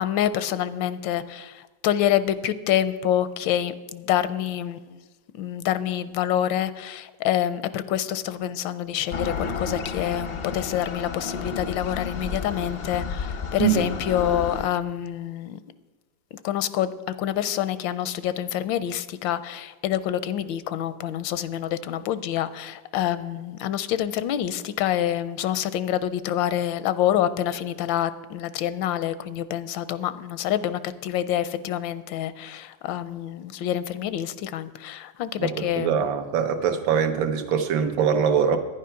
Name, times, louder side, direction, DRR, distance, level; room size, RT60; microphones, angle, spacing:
voice 1, 0.0-5.0 5.4-15.6 16.4-36.0, left 11 dB, 85° left, 14 dB, 1.3 m, -27 dB
sound 1, 9.1-14.6, left 5 dB, 60° left, 0.6 m, -32 dB
voice 2, 13.6-13.9 35.4-38.6, right 7 dB, 80° right, 7 dB, 1.7 m, -23 dB
11.0 x 9.9 x 5.7 m, 1.3 s
omnidirectional pair, 2.1 m